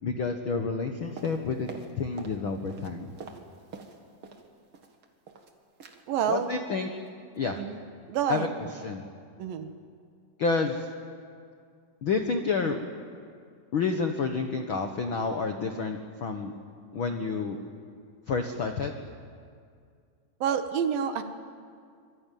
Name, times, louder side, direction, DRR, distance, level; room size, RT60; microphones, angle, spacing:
voice 1, 0.0-1.7 2.0-3.1 6.3-6.9 7.4-7.6 8.3-8.5 8.8-9.1 10.4-10.9 12.0-12.8 13.7-16.5 16.9-17.6 18.3-19.0, left 4 dB, 80° left, 5 dB, 1.1 m, -29 dB
sound 1, 1.2-2.4 2.7-4.5 4.7-5.5 5.8-6.0 6.3-6.5 6.8-7.1 7.3-7.4, right 5 dB, 45° right, 2.2 m, -46 dB
voice 2, 6.1-6.5 7.5-7.8 8.1-8.5 9.4-9.7 20.4-21.2, right 8 dB, 70° right, 8 dB, 2.9 m, -28 dB
26.0 x 22.5 x 9.3 m, 2.2 s
omnidirectional pair, 4.4 m